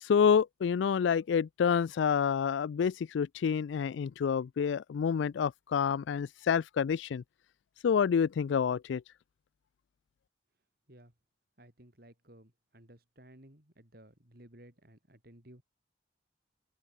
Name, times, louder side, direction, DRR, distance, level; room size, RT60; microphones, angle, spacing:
voice 1, 0.0-7.2 7.8-9.0, left 7 dB, 80° left, 0.3 m, -28 dB
voice 2, 11.6-15.6, right 1 dB, 55° right, 4.0 m, -56 dB
open air
head